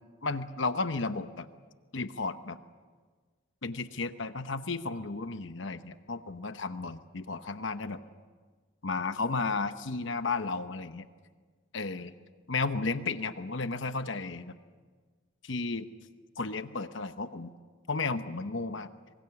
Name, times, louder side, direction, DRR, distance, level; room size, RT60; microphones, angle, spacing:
voice 1, 0.2-1.5 1.9-2.6 3.6-8.0 8.8-11.1 11.7-12.1 12.5-14.6 15.4-15.9 16.4-17.5 17.9-18.9, left 3 dB, 70° left, 10 dB, 0.9 m, -33 dB
26.0 x 23.0 x 7.1 m, 1.5 s
head